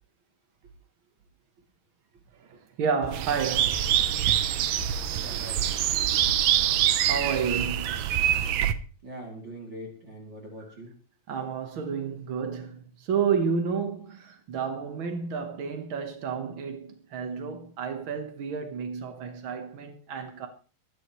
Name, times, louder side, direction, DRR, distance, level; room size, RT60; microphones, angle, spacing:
voice 1, 2.3-3.9 6.8-8.0 11.3-20.5, right 6 dB, 70° right, 1.2 m, -31 dB
sound 1, 3.0-8.6, left 2 dB, 85° left, 3.6 m, -43 dB
sound 2, 3.1-8.7, right 11 dB, 85° right, 1.5 m, -25 dB
voice 2, 5.2-5.7 9.0-11.0, right 1 dB, 30° right, 3.2 m, -42 dB
23.0 x 11.5 x 3.1 m
omnidirectional pair, 4.1 m